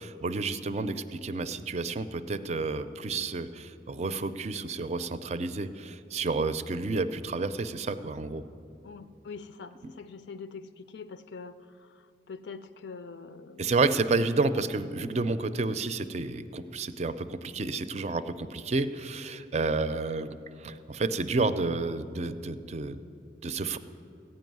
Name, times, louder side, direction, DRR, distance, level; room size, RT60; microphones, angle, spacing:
voice 1, 0.0-8.4 13.6-23.0 23.4-23.8, right 3 dB, 40° right, 12 dB, 0.4 m, -30 dB
voice 2, 8.8-13.7, left 5 dB, 85° left, 11 dB, 0.5 m, -44 dB
15.0 x 5.4 x 9.3 m, 2.5 s
head